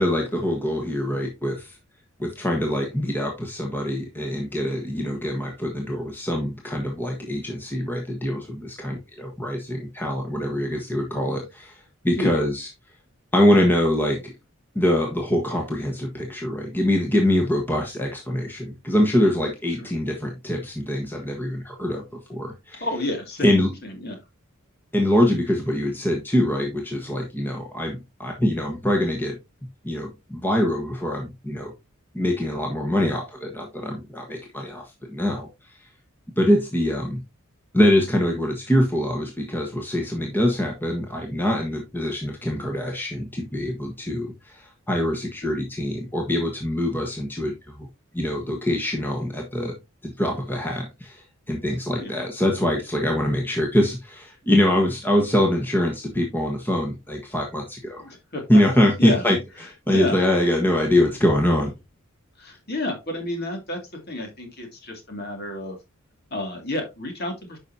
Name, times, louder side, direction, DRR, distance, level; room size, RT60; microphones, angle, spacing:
voice 1, 0.0-1.8 2.2-12.7 13.3-14.3 14.7-22.0 22.3-22.8 23.4-23.7 24.9-29.4 29.8-31.7 32.1-35.5 36.4-37.2 37.7-47.9 48.1-49.7 50.0-58.1 58.5-59.4 59.9-61.7, left 1 dB, 10° left, 0 dB, 1.3 m, -24 dB
voice 2, 22.8-23.5 23.8-24.2 52.0-52.2 58.0-58.4 59.0-59.3 59.9-60.2 62.4-63.8 64.1-65.8 66.3-67.6, left 1 dB, 45° left, 3 dB, 2.5 m, -30 dB
10.0 x 5.6 x 2.8 m, 0.24 s
head